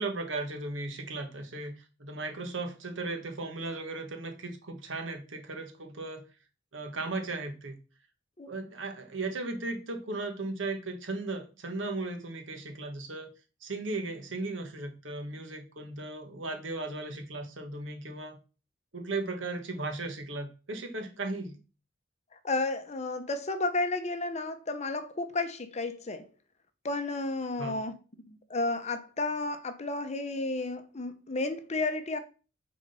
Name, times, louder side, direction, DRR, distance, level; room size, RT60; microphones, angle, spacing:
voice 1, 0.0-1.7 2.0-6.2 6.7-7.8 8.5-13.3 13.6-18.4 18.9-21.6 27.6-27.8, right 2 dB, 80° right, 1.4 m, -36 dB
voice 2, 22.4-26.3 26.8-28.0 28.3-32.2, left 2 dB, 35° left, 0.8 m, -32 dB
6.5 x 3.9 x 5.5 m
head